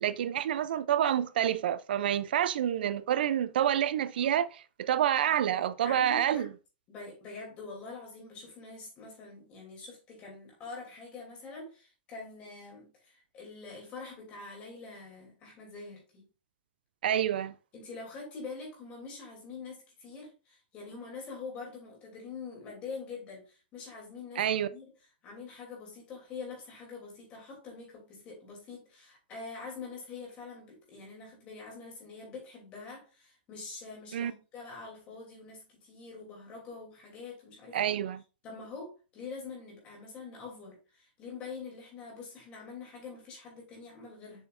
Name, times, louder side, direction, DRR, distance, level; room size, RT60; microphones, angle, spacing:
voice 1, 0.0-6.5 17.0-17.5 24.4-24.7 34.1-34.3 37.7-38.2, right 10 dB, 70° right, 0.5 m, -28 dB
voice 2, 5.8-6.5 6.9-16.3 17.7-24.9 25.2-38.0 38.4-44.5, left 4 dB, 20° left, 2.9 m, -45 dB
7.1 x 5.7 x 2.5 m
supercardioid pair, 175°, 6 cm